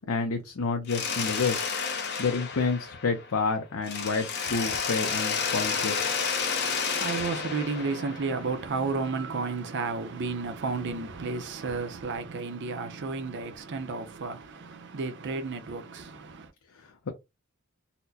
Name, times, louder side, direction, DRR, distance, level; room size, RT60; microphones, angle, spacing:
voice 1, 0.1-1.6 2.2-6.1, left 4 dB, 85° left, 0.6 m, -29 dB
Mechanisms, 0.9-3.5 3.8-8.7, left 5 dB, 55° left, 0.8 m, -31 dB
voice 2, 6.6-16.5, right 4 dB, 55° right, 0.6 m, -32 dB
4.1 x 2.1 x 2.7 m
head